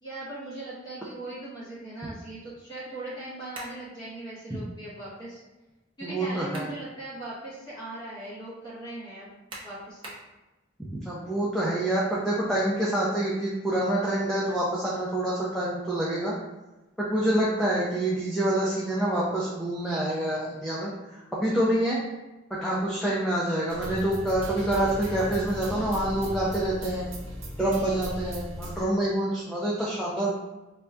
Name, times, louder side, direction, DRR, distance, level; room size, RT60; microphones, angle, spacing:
voice 1, 0.0-5.4 6.0-9.3 9.6-10.2 17.9-18.1 23.0-23.2, right 2 dB, 25° left, -10 dB, 1.1 m, -39 dB
sound 1, 3.5-3.8 6.2-6.8 7.3-7.4 9.5-10.3, right 1 dB, 25° right, 0.8 m, -42 dB
voice 2, 6.0-6.7 10.9-16.4 17.0-22.0 22.5-27.1 27.6-30.3, right 1 dB, ahead, -7 dB, 0.5 m, -27 dB
sound 2, 23.7-28.8, equal, 85° right, 0.7 m, -37 dB
4.0 x 2.3 x 3.3 m, 1.1 s
head